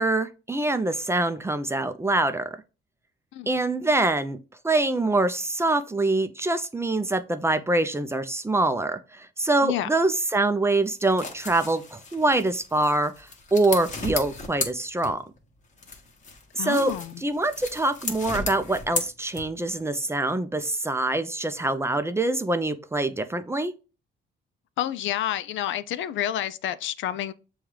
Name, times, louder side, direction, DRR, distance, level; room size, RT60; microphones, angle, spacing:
voice 1, 0.0-2.5 3.5-4.4 4.6-15.2 16.5-16.9 17.2-23.7, right 2 dB, 15° right, 0.4 m, -25 dB
sound 1, 10.9-15.4 15.8-19.8, left 3 dB, 40° left, 1.1 m, -35 dB
voice 2, 16.6-17.1 24.8-27.3, left 11 dB, 75° left, 0.4 m, -29 dB
7.0 x 2.3 x 3.2 m
cardioid pair, 90°, 20 cm